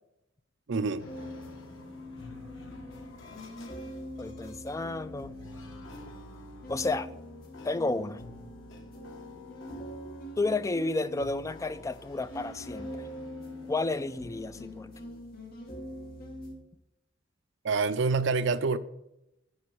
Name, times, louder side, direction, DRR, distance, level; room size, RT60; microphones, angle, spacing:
voice 1, 0.7-1.1 17.6-18.8, right 4 dB, 65° right, 0.5 m, -27 dB
sound 1, 1.0-15.2, left 2 dB, 80° left, 1.6 m, -52 dB
sound 2, 1.1-16.6, equal, 50° left, 2.0 m, -44 dB
voice 2, 4.2-5.3 6.7-7.1 7.6-8.2 10.4-13.1 13.6-14.9, left 3 dB, 15° left, 0.3 m, -31 dB
9.8 x 4.4 x 6.1 m
head